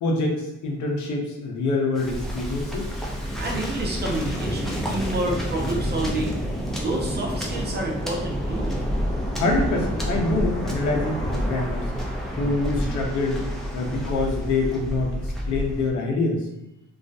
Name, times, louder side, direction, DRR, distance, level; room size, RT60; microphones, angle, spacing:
voice 1, 0.0-2.9 9.4-11.9 12.3-13.5 13.7-16.5, left 3 dB, 75° left, 1 dB, 0.6 m, -25 dB
Waves surf, 2.0-15.9, equal, ahead, 0.4 m, -28 dB
voice 2, 3.4-6.4 6.7-8.8, right 1 dB, 35° right, -1 dB, 0.7 m, -29 dB
2.4 x 2.1 x 2.6 m, 0.87 s
cardioid pair, 90°, 30 cm